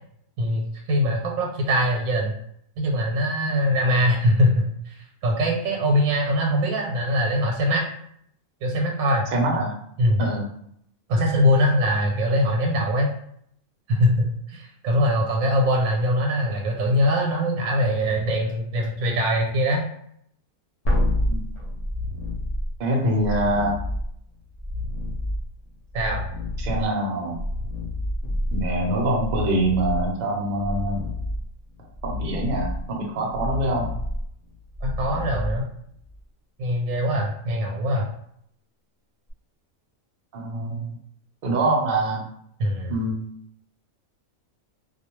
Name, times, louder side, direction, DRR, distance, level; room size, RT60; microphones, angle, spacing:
voice 1, 0.4-2.4 2.8-7.8 8.6-9.2 10.0-10.2 11.1-13.1 13.9-19.8 25.9-26.2 34.8-35.7 36.6-38.1 42.6-42.9, equal, 85° right, 0 dB, 1.1 m, -22 dB
voice 2, 9.3-9.7 10.2-10.4 21.3-21.4 22.8-23.7 26.6-27.4 28.5-31.0 32.0-33.9 40.3-40.9 41.4-42.2 42.9-43.2, right 1 dB, 55° right, -1 dB, 0.7 m, -24 dB
sound 1, 20.9-36.2 39.3-39.4, left 1 dB, 55° left, 0.4 m, -29 dB
2.3 x 2.2 x 2.9 m, 0.69 s
omnidirectional pair, 1.5 m